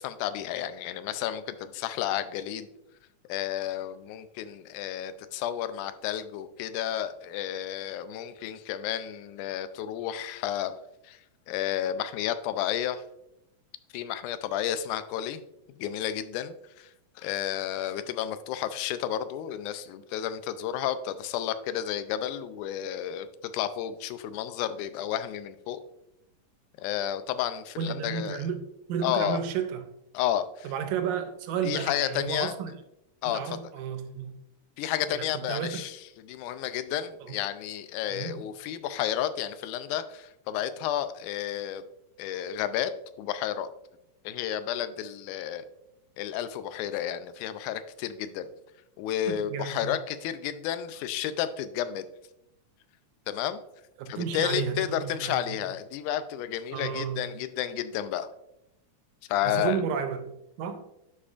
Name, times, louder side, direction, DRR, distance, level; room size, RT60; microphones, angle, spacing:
voice 1, 0.0-2.7 3.3-10.7 11.1-11.2 11.5-13.0 13.9-15.4 15.8-16.9 17.2-23.3 23.5-25.8 26.8-28.4 29.0-29.4 30.1-30.7 31.6-32.6 33.2-33.4 34.8-36.0 36.3-41.8 42.2-42.9 43.2-43.7 44.3-45.6 46.2-48.5 49.0-52.1 53.3-53.6 54.1-58.3 59.3-59.8, left 11 dB, 80° left, 12 dB, 2.0 m, -31 dB
voice 2, 27.8-29.9 30.6-32.7 33.3-34.4 35.1-35.8 37.2-37.4 38.1-38.5 49.3-50.0 54.0-55.6 56.7-57.4 59.4-60.8, right 7 dB, 80° right, 8 dB, 1.8 m, -33 dB
11.0 x 4.9 x 2.4 m, 0.84 s
omnidirectional pair, 3.7 m